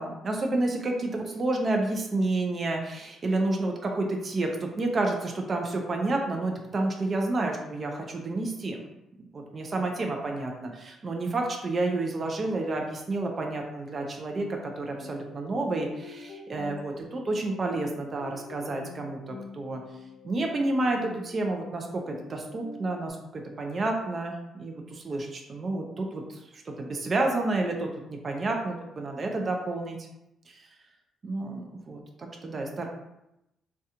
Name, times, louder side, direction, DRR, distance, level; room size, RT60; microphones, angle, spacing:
voice 1, 0.0-8.8 9.3-19.8 20.2-30.0 30.5-30.6 31.2-32.9, right 2 dB, 25° right, 2 dB, 0.3 m, -30 dB
sound 1, 14.4-23.1, left 4 dB, 80° left, 0.6 m, -45 dB
2.8 x 2.2 x 3.6 m, 0.88 s
cardioid pair, 170°, 0 cm